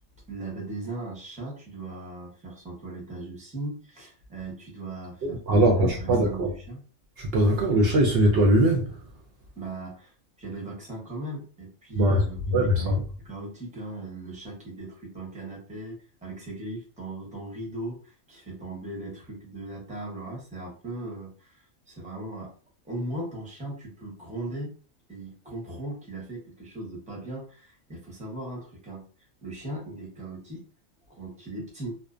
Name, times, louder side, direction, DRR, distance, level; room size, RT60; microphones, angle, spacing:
voice 1, 0.3-6.8 9.6-10.1 10.4-22.5 22.8-24.7 25.1-29.0 29.4-30.6 31.1-32.0, right 2 dB, 5° right, 0.6 m, -38 dB
voice 2, 5.2-6.5 7.2-8.9 12.0-12.2 12.5-13.0, right 1 dB, 65° right, 0.6 m, -21 dB
2.6 x 2.0 x 2.4 m
omnidirectional pair, 1.4 m